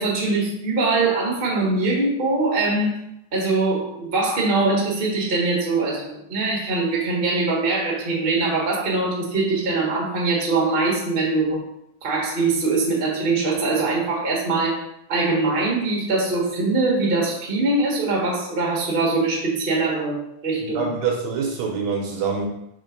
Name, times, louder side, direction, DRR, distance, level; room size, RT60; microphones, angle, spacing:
voice 1, 0.0-2.9 3.3-11.6 12.0-14.8 15.1-20.9, right 3 dB, 35° right, -3 dB, 0.9 m, -22 dB
voice 2, 20.7-22.5, right 5 dB, 70° right, 1 dB, 1.9 m, -25 dB
5.7 x 3.4 x 5.2 m, 0.79 s
omnidirectional pair, 3.6 m